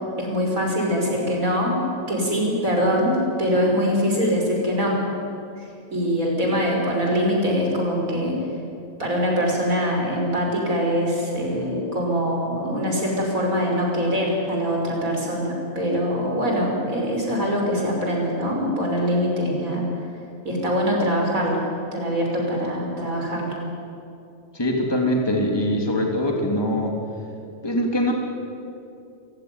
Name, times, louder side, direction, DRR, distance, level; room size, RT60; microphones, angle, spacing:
voice 1, 0.2-1.8 2.1-5.0 5.6-8.4 9.0-19.8 20.4-21.6 21.9-23.6, equal, 65° right, -1 dB, 6.1 m, -23 dB
voice 2, 24.5-27.0 27.6-28.1, left 1 dB, 15° left, 1 dB, 3.3 m, -22 dB
28.0 x 16.0 x 9.9 m, 2.7 s
omnidirectional pair, 1.5 m